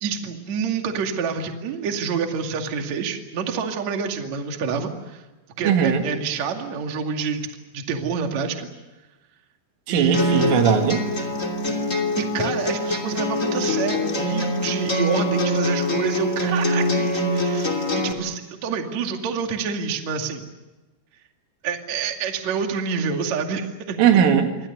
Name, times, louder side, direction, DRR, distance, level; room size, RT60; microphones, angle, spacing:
voice 1, 0.0-5.2 5.6-7.5 7.7-8.7 9.9-10.6 12.2-20.4 21.6-24.0, right 6 dB, 45° right, 4 dB, 2.9 m, -27 dB
voice 2, 5.6-6.0 9.9-11.0 24.0-24.7, right 8 dB, 85° right, 5 dB, 4.6 m, -19 dB
sound 1, 10.1-18.1, left 1 dB, 20° left, 2.2 m, -24 dB
28.0 x 24.0 x 6.8 m, 1.1 s
omnidirectional pair, 5.6 m